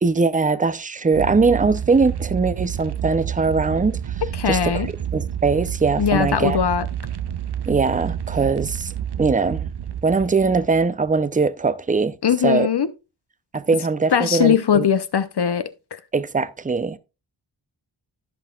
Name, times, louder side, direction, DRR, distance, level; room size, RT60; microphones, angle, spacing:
voice 1, 0.0-4.0 4.5-6.6 7.7-8.9 9.2-9.6 10.0-12.1 12.4-12.7 13.5-14.8 16.1-17.0, right 4 dB, 20° right, 0.6 m, -21 dB
sound 1, 1.1-11.2, right 9 dB, 60° right, 0.7 m, -29 dB
voice 2, 4.4-4.9 6.0-6.9 12.2-12.9 14.1-16.0, left 8 dB, 60° left, 0.8 m, -20 dB
15.0 x 5.7 x 2.4 m
wide cardioid pair, 70°, 46 cm